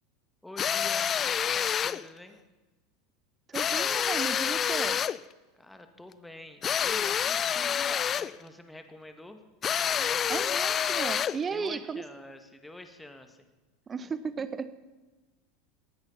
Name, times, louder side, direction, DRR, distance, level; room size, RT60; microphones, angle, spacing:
voice 1, 0.4-2.4 5.5-9.4 9.9-10.3 11.5-13.5, left 1 dB, 5° left, 7 dB, 1.9 m, -46 dB
sound 1, 0.6-2.0 3.5-5.2 6.6-8.4 9.6-11.4, left 8 dB, 30° left, 0.4 m, -28 dB
voice 2, 3.5-5.0 10.3-12.1 13.9-14.8, right 5 dB, 25° right, 14 dB, 1.0 m, -35 dB
19.0 x 17.0 x 4.2 m, 1.2 s
figure-of-eight pair, 80°, 0 cm